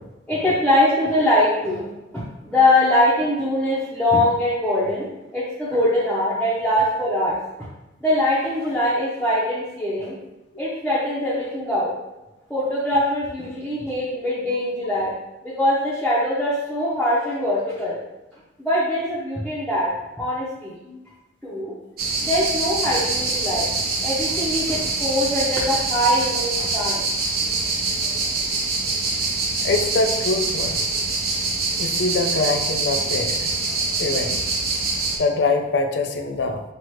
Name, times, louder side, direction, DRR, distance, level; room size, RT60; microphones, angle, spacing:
voice 1, 0.3-7.4 8.0-10.1 10.6-11.9 12.5-15.1 15.4-18.0 18.6-19.9 20.2-20.8 21.4-21.7 22.2-23.7 24.0-27.1, left 1 dB, 5° left, -11 dB, 0.7 m, -22 dB
sound 1, 22.0-35.2, right 3 dB, 55° right, 0.9 m, -24 dB
voice 2, 29.6-30.8 31.8-33.6 34.0-34.4 35.2-36.6, left 3 dB, 65° left, 6 dB, 0.4 m, -24 dB
5.8 x 2.4 x 3.1 m, 0.97 s
head